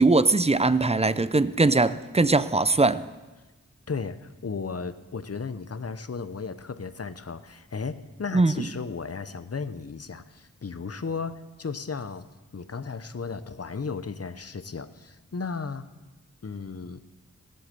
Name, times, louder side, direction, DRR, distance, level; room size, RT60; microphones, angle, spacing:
voice 1, 0.0-3.0 8.3-8.7, right 3 dB, 20° right, 14 dB, 0.5 m, -21 dB
voice 2, 3.9-12.3 12.5-15.9 16.4-17.0, left 5 dB, 45° left, 12 dB, 0.7 m, -35 dB
17.0 x 7.9 x 6.7 m, 1.2 s
wide cardioid pair, 65°, 33 cm